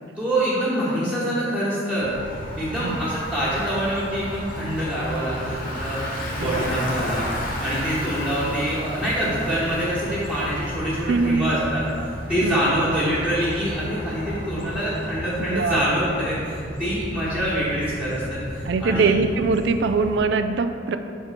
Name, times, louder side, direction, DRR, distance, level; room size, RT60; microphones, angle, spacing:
voice 1, 0.2-2.1 2.6-19.1, equal, 5° right, -10 dB, 1.1 m, -25 dB
Bicycle, 2.0-20.2, equal, 45° left, 0.9 m, -33 dB
voice 2, 6.4-6.7 11.1-11.6 12.4-12.6 15.5-15.8 18.7-21.0, right 4 dB, 60° right, 9 dB, 0.3 m, -22 dB
5.7 x 4.4 x 5.1 m, 2.5 s
head